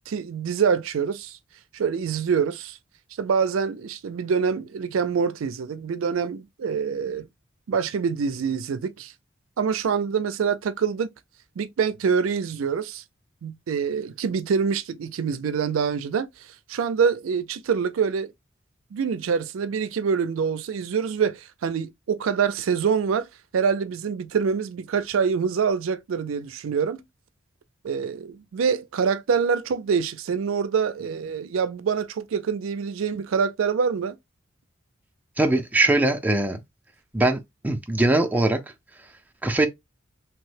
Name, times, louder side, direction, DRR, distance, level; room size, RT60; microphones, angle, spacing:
voice 1, 0.1-1.4 1.7-2.8 3.2-7.3 7.7-9.1 9.6-11.1 11.6-13.0 13.4-18.3 18.9-23.3 23.5-27.0 27.8-34.2, right 6 dB, 85° right, 0.4 m, -25 dB
voice 2, 35.4-36.6 37.1-37.4 37.6-38.6 39.4-39.7, right 2 dB, 10° right, 0.4 m, -21 dB
3.0 x 2.1 x 3.2 m
head